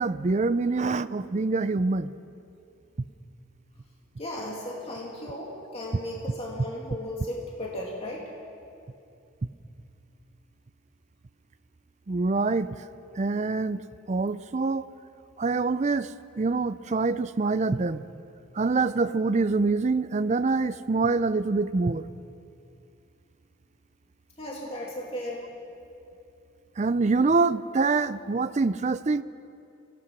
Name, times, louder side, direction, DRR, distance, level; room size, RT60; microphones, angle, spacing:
voice 1, 0.0-2.1 12.1-12.8 13.2-13.8 14.1-14.9 15.4-18.0 18.5-22.1 26.8-29.2, right 3 dB, 35° right, 13 dB, 0.4 m, -25 dB
voice 2, 4.2-8.3 24.4-25.5, left 1 dB, 30° left, -2 dB, 2.3 m, -36 dB
26.0 x 17.5 x 6.1 m, 2.6 s
head